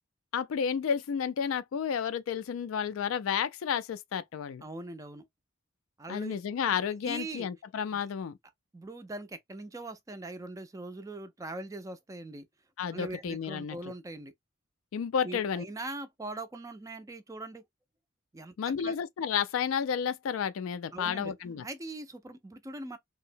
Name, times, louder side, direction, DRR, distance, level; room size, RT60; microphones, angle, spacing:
voice 1, 0.3-4.6 6.1-8.3 12.8-13.8 14.9-15.6 18.6-21.7, left 7 dB, 70° left, 0.3 m, -31 dB
voice 2, 4.6-5.2 6.0-6.4 6.7-6.8 7.0-7.5 7.9-8.0 8.7-12.5 12.9-14.3 15.2-17.6 18.3-18.5 18.8-19.0 20.9-21.3 21.6-23.0, right 2 dB, 15° right, 0.4 m, -41 dB
2.8 x 2.1 x 2.5 m
head